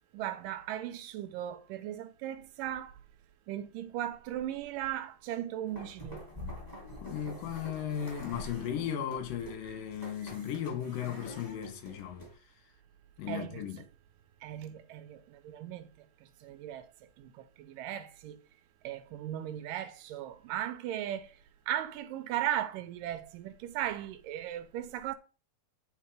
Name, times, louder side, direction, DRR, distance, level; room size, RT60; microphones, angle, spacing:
voice 1, 0.1-2.9 3.5-6.3 13.3-13.7 14.4-15.9 16.4-16.9 17.2-18.4 18.8-21.3 21.7-25.1, right 12 dB, 80° right, 2.4 m, -37 dB
sound 1, 5.7-12.3, equal, 5° left, 2.1 m, -46 dB
voice 2, 7.0-12.3 13.2-13.8, left 9 dB, 80° left, 2.9 m, -36 dB
9.5 x 3.9 x 4.9 m
omnidirectional pair, 3.9 m